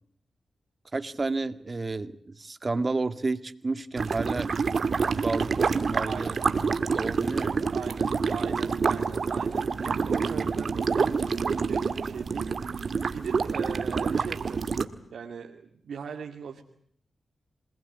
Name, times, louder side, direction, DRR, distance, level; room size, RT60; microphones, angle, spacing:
voice 1, 0.9-4.6 5.2-7.6, right 3 dB, 40° right, 12 dB, 1.9 m, -31 dB
sound 1, 4.0-14.8, right 5 dB, 65° right, 1.9 m, -27 dB
voice 2, 6.0-6.4 7.7-14.7 15.1-16.6, right 6 dB, 80° right, 2 dB, 2.5 m, -39 dB
28.0 x 19.5 x 9.4 m, 0.64 s
cardioid pair, 60°, 0 cm